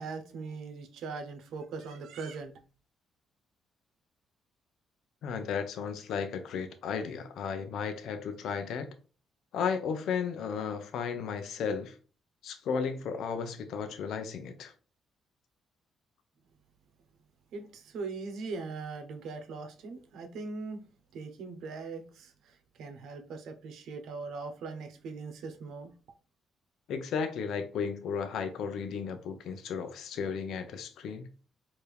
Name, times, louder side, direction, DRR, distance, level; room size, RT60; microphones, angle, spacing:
voice 1, 0.0-2.5 17.5-20.8 21.1-25.9, right 4 dB, 75° right, 1.0 m, -40 dB
voice 2, 5.2-8.9 9.5-12.0 12.4-14.7 26.9-31.3, left 6 dB, 75° left, 0.6 m, -34 dB
4.6 x 2.8 x 3.4 m
cardioid pair, 90°, 0 cm